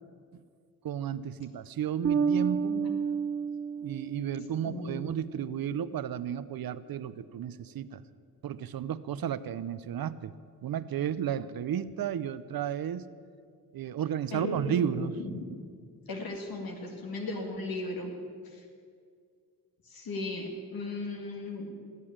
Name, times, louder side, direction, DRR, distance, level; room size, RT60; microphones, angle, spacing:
voice 1, 0.8-2.8 3.8-8.0 8.4-10.3 10.6-13.1 13.7-15.2, right 9 dB, 75° right, 15 dB, 0.7 m, -33 dB
Bass guitar, 2.0-4.7, right 6 dB, 40° right, 0.6 m, -30 dB
voice 2, 4.6-5.0 14.3-15.6 16.1-18.1 18.4-18.7 19.8-21.7, left 2 dB, 75° left, 2 dB, 2.3 m, -36 dB
18.0 x 8.4 x 8.8 m, 2.2 s
cardioid pair, 75°, 36 cm